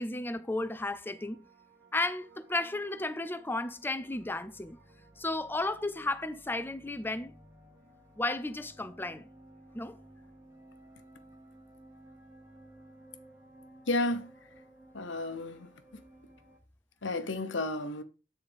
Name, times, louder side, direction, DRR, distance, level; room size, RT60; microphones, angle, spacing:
voice 1, 0.0-1.5 1.9-4.8 5.2-7.3 8.2-9.2 9.7-10.0, left 2 dB, 10° left, 0.5 m, -33 dB
sound 1, 1.1-16.6, right 1 dB, 15° right, 1.6 m, -57 dB
voice 2, 13.9-14.5 14.9-16.0 17.0-18.0, left 2 dB, 75° left, 1.0 m, -33 dB
9.0 x 4.1 x 5.2 m
head